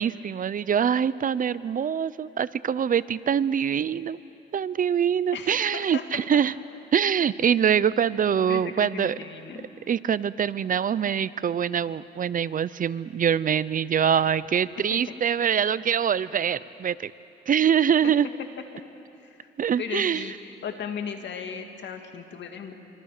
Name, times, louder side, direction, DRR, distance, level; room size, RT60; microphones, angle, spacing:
voice 1, 0.0-4.2 4.5-6.5 6.9-9.2 9.9-17.1 17.5-18.3 19.6-20.3, right 8 dB, 45° right, 18 dB, 0.6 m, -24 dB
voice 2, 5.3-6.4 8.5-9.7 14.2-14.3 14.9-15.1 19.2-19.5 19.8-22.7, left 7 dB, 65° left, 5 dB, 2.3 m, -37 dB
26.0 x 25.0 x 6.7 m, 2.8 s
cardioid pair, 90°, 20 cm